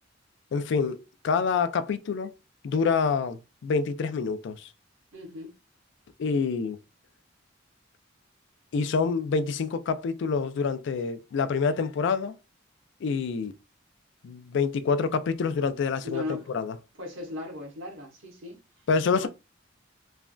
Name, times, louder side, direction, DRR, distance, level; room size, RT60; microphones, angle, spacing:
voice 1, 0.5-2.3 2.6-4.7 6.2-6.8 8.7-12.3 13.0-13.5 14.2-16.8 18.9-19.3, left 5 dB, 65° left, 0.3 m, -27 dB
voice 2, 5.1-5.5 16.0-16.5 17.0-18.6 19.2-19.3, left 2 dB, 80° right, 1.0 m, -37 dB
3.2 x 2.4 x 2.2 m
head